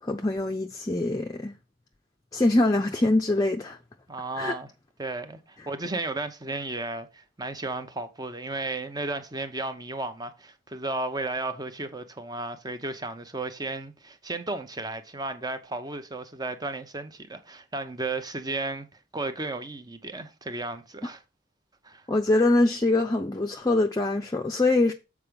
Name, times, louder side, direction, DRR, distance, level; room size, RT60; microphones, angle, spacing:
voice 1, 0.0-1.5 2.3-3.8 4.4-4.6 21.0-21.1 22.1-24.9, left 2 dB, 20° left, 0.6 m, -24 dB
voice 2, 4.1-4.7 5.0-18.9 19.1-21.2 21.8-22.0, right 2 dB, 20° right, 0.8 m, -34 dB
7.4 x 4.7 x 5.1 m
head